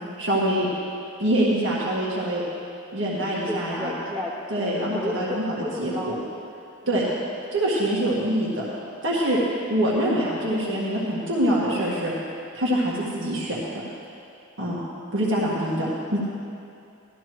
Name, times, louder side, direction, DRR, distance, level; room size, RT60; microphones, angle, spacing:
voice 1, 0.2-0.7 1.2-2.4 2.9-3.9 4.5-5.4 5.8-6.1 6.9-7.1 7.5-8.6 9.0-9.4 9.7-12.1 12.5-13.8 14.6-14.8 15.1-16.3, right 1 dB, 65° right, -6 dB, 1.7 m, -24 dB
voice 2, 3.4-6.2 6.8-7.2 15.5-15.8, left 1 dB, 25° right, -3 dB, 1.6 m, -33 dB
16.0 x 13.0 x 3.1 m, 2.6 s
head